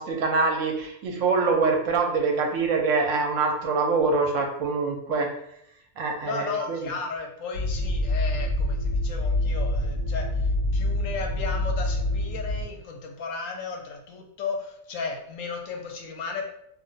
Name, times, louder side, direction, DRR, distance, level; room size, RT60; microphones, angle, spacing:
voice 1, 0.0-5.3 6.0-6.9, right 4 dB, 75° right, 2 dB, 1.0 m, -24 dB
voice 2, 6.2-16.4, left 4 dB, 75° left, 2 dB, 1.0 m, -34 dB
sound 1, 7.5-12.6, left 1 dB, 50° right, 0.9 m, -26 dB
2.4 x 2.2 x 3.8 m, 0.74 s
omnidirectional pair, 1.4 m